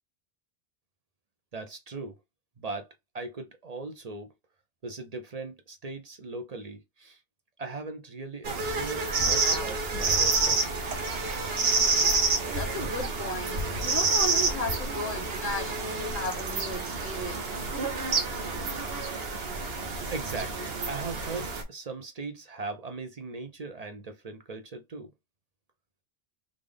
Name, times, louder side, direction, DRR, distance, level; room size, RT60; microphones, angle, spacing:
voice 1, 1.5-2.2 2.6-4.3 4.8-7.2 7.6-10.8 20.1-25.1, right 3 dB, 45° right, 0.6 m, -39 dB
sound 1, 8.4-21.6, right 4 dB, 60° right, 1.0 m, -28 dB
voice 2, 12.0-17.5, left 1 dB, 10° right, 1.2 m, -35 dB
3.7 x 2.5 x 3.3 m
omnidirectional pair, 1.2 m